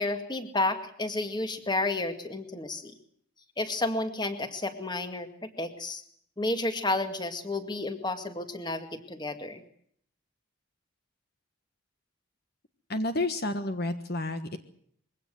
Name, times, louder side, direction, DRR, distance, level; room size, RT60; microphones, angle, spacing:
voice 1, 0.0-2.9 3.6-6.0 6.4-9.6, left 2 dB, 20° left, 8 dB, 2.0 m, -31 dB
voice 2, 12.9-14.6, left 2 dB, 50° left, 8 dB, 1.4 m, -30 dB
22.5 x 17.0 x 7.8 m, 0.65 s
head